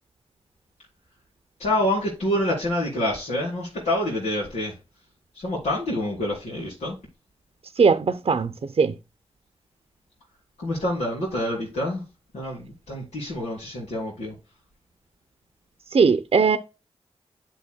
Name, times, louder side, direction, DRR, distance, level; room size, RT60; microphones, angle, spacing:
voice 1, 1.6-4.8 5.3-7.0 10.6-12.0 12.3-14.4, left 1 dB, 90° left, 3.5 m, -27 dB
voice 2, 7.8-8.5 8.8-8.9 15.9-16.6, right 5 dB, 60° right, 0.7 m, -19 dB
8.5 x 7.0 x 2.2 m
cardioid pair, 45°, 11 cm